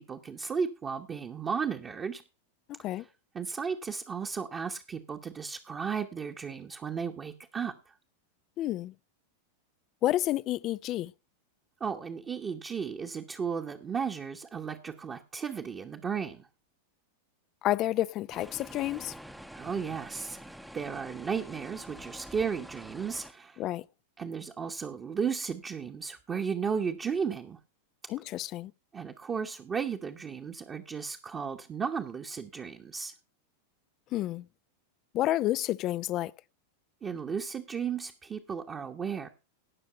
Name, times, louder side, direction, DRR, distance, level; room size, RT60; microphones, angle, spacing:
voice 1, 0.0-2.2 3.3-7.9 11.8-16.5 19.5-23.6 24.2-27.6 28.9-33.1 37.0-39.3, right 6 dB, 20° right, 1.2 m, -34 dB
voice 2, 2.7-3.1 8.6-8.9 10.0-11.1 17.6-19.1 23.6-23.8 28.1-28.7 34.1-34.5 35.1-36.3, left 14 dB, 35° left, 0.5 m, -30 dB
sound 1, 18.3-23.3, equal, ahead, 0.9 m, -47 dB
18.0 x 6.5 x 4.2 m
figure-of-eight pair, 90°, 0 cm